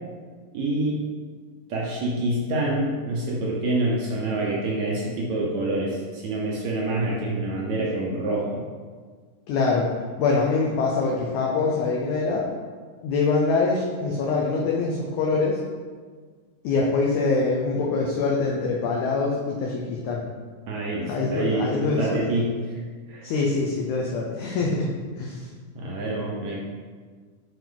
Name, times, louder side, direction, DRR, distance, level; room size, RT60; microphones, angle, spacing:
voice 1, 0.5-1.0 1.7-8.6 20.7-22.8 23.1-23.3 25.7-26.6, right 2 dB, 70° right, -3 dB, 1.9 m, -26 dB
voice 2, 9.5-9.9 10.2-12.5 13.0-15.6 16.6-20.3 21.1-22.2 23.2-25.5, left 4 dB, 75° left, -2 dB, 1.9 m, -24 dB
9.3 x 4.4 x 3.9 m, 1.6 s
omnidirectional pair, 4.0 m